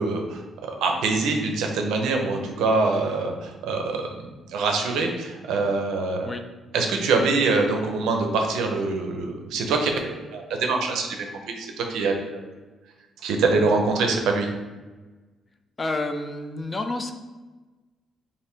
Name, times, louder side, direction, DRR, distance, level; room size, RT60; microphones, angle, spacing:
voice 1, 0.0-4.0 4.5-6.3 6.7-11.2 11.6-12.4 13.2-14.5, right 3 dB, 85° right, 3 dB, 0.4 m, -24 dB
voice 2, 15.8-17.1, left 2 dB, 25° left, 6 dB, 0.3 m, -29 dB
2.6 x 2.5 x 3.4 m, 1.2 s
cardioid pair, 90°, 0 cm